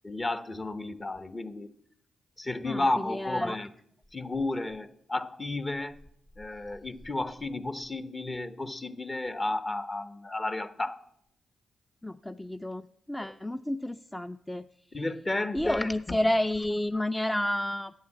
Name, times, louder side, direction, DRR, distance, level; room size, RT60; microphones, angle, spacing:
voice 1, 0.0-1.7 2.4-3.7 4.1-6.0 6.4-11.0 13.2-13.3 14.9-16.2 17.0-17.1, left 2 dB, 30° left, 11 dB, 1.0 m, -32 dB
voice 2, 2.6-3.6 12.0-14.7 15.5-17.9, left 1 dB, 15° left, 10 dB, 0.4 m, -30 dB
9.3 x 8.5 x 7.3 m, 0.71 s
supercardioid pair, 50°, 0 cm